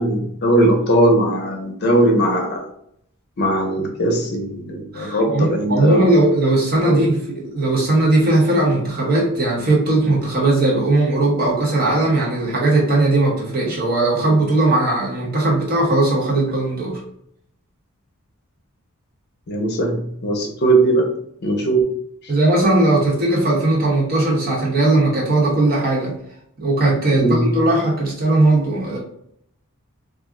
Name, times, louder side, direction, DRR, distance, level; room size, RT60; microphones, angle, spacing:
voice 1, 0.0-2.6 3.4-6.1 6.8-6.9 19.5-21.1 21.4-21.9 27.2-27.5, right 1 dB, 50° left, 1 dB, 0.6 m, -19 dB
voice 2, 4.9-17.0 22.3-26.1 26.6-29.0, right 2 dB, 45° right, -4 dB, 0.9 m, -18 dB
2.4 x 2.0 x 3.6 m, 0.70 s
head